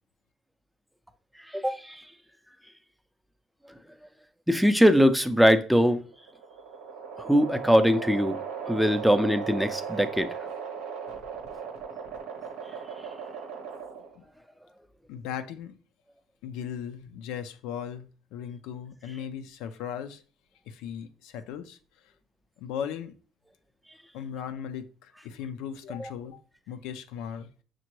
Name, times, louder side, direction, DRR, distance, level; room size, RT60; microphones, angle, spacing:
voice 1, 1.5-2.0 4.5-6.0 7.2-8.4 8.7-10.3 26.0-26.1, equal, ahead, 0.4 m, -21 dB
sound 1, 6.0-14.2, right 6 dB, 90° right, 0.8 m, -37 dB
voice 2, 15.1-15.8 16.4-20.2 20.7-21.8 22.6-23.2 24.1-26.4 26.7-27.5, left 8 dB, 80° left, 0.3 m, -37 dB
5.9 x 2.2 x 2.9 m
supercardioid pair, 85°, 0 cm